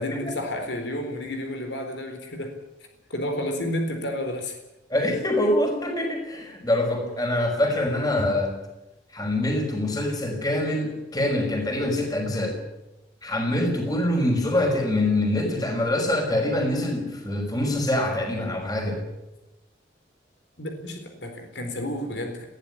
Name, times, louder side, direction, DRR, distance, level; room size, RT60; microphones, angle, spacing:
voice 1, 0.0-2.6 3.1-4.6 20.6-22.5, left 1 dB, 65° left, 5 dB, 4.1 m, -31 dB
voice 2, 4.9-8.6 9.1-12.6 13.2-19.0, left 1 dB, 20° left, 3 dB, 5.8 m, -25 dB
21.5 x 16.0 x 9.9 m, 0.99 s
head